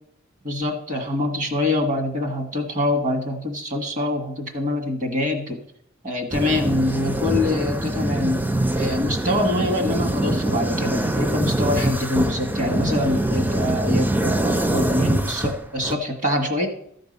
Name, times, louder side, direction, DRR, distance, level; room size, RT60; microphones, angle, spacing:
voice 1, 0.4-5.6 6.0-8.4 8.7-16.7, left 1 dB, 40° right, 4 dB, 1.8 m, -24 dB
sound 1, 6.3-15.9, right 1 dB, 10° right, 0.4 m, -24 dB
14.0 x 5.3 x 5.4 m, 0.69 s
head